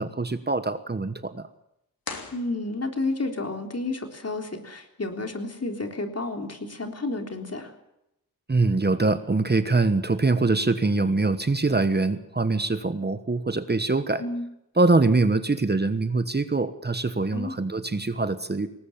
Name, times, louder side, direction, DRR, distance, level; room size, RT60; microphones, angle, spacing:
voice 1, 0.0-1.5 8.5-14.2 14.8-18.7, right 3 dB, 30° right, 11 dB, 1.2 m, -23 dB
sound 1, 2.0-3.2, left 4 dB, 80° left, 3.1 m, -39 dB
voice 2, 2.3-7.7 14.2-14.5 17.3-17.5, left 2 dB, 45° left, 4 dB, 3.6 m, -31 dB
19.5 x 19.0 x 7.3 m, 0.84 s
cardioid pair, 65°, 35 cm